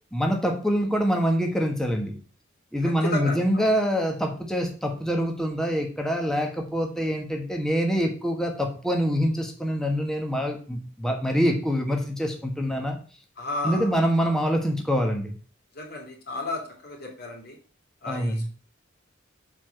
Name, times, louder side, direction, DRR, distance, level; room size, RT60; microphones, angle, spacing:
voice 1, 0.1-2.2 2.7-13.0 13.6-15.3 18.1-18.5, equal, 5° left, 2 dB, 1.3 m, -25 dB
voice 2, 2.8-3.7 13.4-13.9 14.2-14.3 15.7-17.6 18.0-18.5, left 2 dB, 55° left, 1 dB, 2.7 m, -33 dB
7.1 x 4.8 x 5.8 m, 0.38 s
head